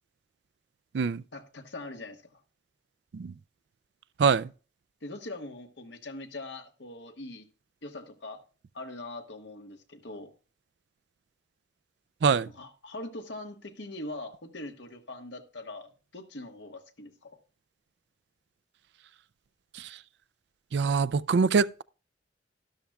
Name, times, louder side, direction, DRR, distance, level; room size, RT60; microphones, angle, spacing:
voice 1, 1.3-2.4 5.0-7.5 7.8-8.4 8.7-10.3 12.6-17.4, left 2 dB, 75° left, 1.4 m, -42 dB
voice 2, 4.2-4.5 12.2-12.5 19.7-20.0 20.7-21.8, right 5 dB, 65° right, 0.4 m, -24 dB
13.0 x 11.5 x 2.3 m
head